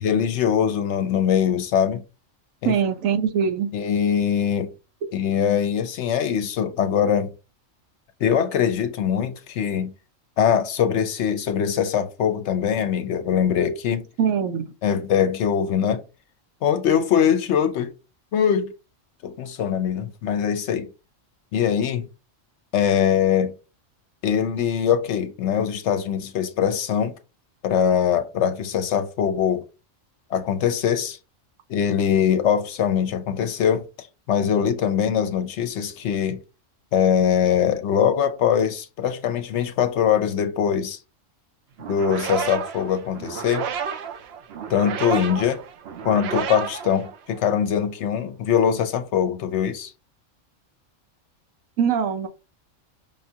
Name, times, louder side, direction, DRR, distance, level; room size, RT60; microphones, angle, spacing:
voice 1, 0.0-2.0 2.6-2.7 3.7-4.7 5.1-7.3 8.2-9.9 10.4-14.0 14.8-16.0 16.6-17.9 18.3-18.7 19.2-20.9 21.5-22.1 22.7-23.5 24.2-27.1 27.6-29.6 30.3-31.2 31.7-36.4 36.9-41.0 41.9-43.7 44.7-45.6 46.0-49.9, left 8 dB, 70° left, 0.8 m, -22 dB
voice 2, 2.6-3.7 14.2-14.7 51.8-52.3, right 7 dB, 90° right, 1.1 m, -22 dB
sound 1, 41.8-47.6, right 7 dB, 65° right, 0.7 m, -31 dB
5.3 x 2.3 x 2.7 m
omnidirectional pair, 1.3 m